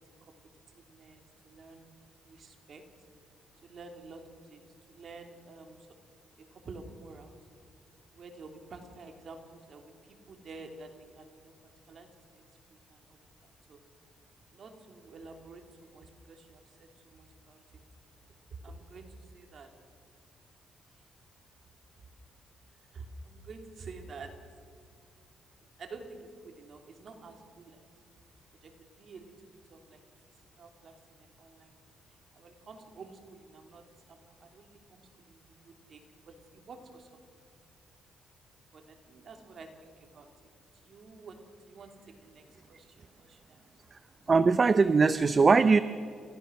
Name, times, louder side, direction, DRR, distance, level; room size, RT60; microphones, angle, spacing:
voice 1, 0.7-1.8 2.2-2.8 3.6-4.2 4.5-5.8 6.5-7.4 8.1-9.8 10.3-11.5 11.9-12.1 12.3-13.3 13.7-13.8 14.5-17.8 18.6-19.7 22.9-24.4 25.8-27.8 28.6-29.3 29.7-30.0 30.6-31.8 32.3-33.8 34.1-36.0 36.3-37.2 38.7-40.3 40.7-41.4 41.7-43.6, right 3 dB, 50° right, 4 dB, 3.2 m, -49 dB
voice 2, 44.3-45.8, right 4 dB, 35° right, 13 dB, 0.6 m, -21 dB
29.5 x 14.5 x 6.4 m, 2.2 s
cardioid pair, 90°, 0 cm